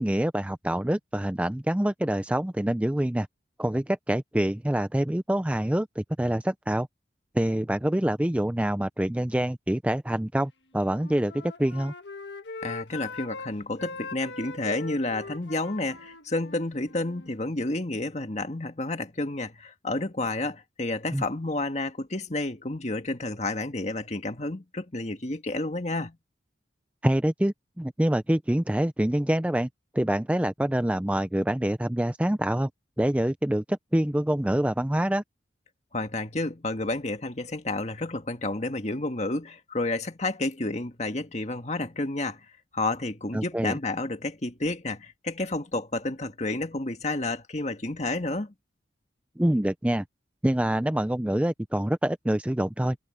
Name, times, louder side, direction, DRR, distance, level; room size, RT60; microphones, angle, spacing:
voice 1, 0.0-3.3 3.6-6.9 7.3-11.9 21.1-21.2 27.0-29.7 29.9-32.7 33.0-35.2 43.3-43.8 49.4-50.0 50.4-53.0, right 1 dB, 5° right, 0.4 m, -26 dB
Wind instrument woodwind instrument, 10.8-13.5 13.8-17.4, left 3 dB, 80° left, 1.6 m, -41 dB
voice 2, 12.6-26.2 35.9-42.5 42.7-48.5, left 2 dB, 40° left, 1.8 m, -30 dB
head